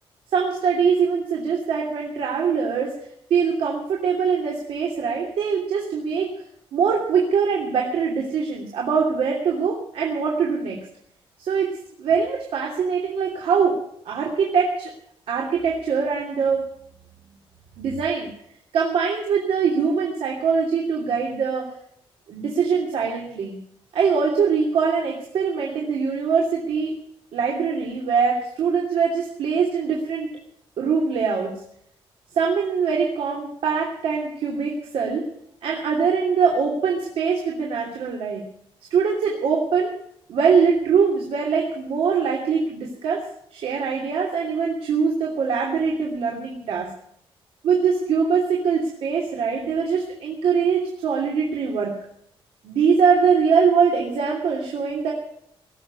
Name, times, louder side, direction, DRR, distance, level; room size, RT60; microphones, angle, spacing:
voice 1, 0.3-2.9 3.3-6.3 6.7-10.8 11.4-13.8 14.0-14.9 15.3-16.6 17.8-18.3 18.7-21.6 22.3-23.6 23.9-26.9 27.3-30.3 30.8-31.5 32.3-35.3 35.6-38.4 38.9-39.9 40.3-43.2 43.5-46.9 47.6-51.9 52.6-55.1, right 6 dB, 80° right, -1 dB, 2.9 m, -22 dB
18.5 x 7.7 x 9.4 m, 0.70 s
wide cardioid pair, 160°, 10 cm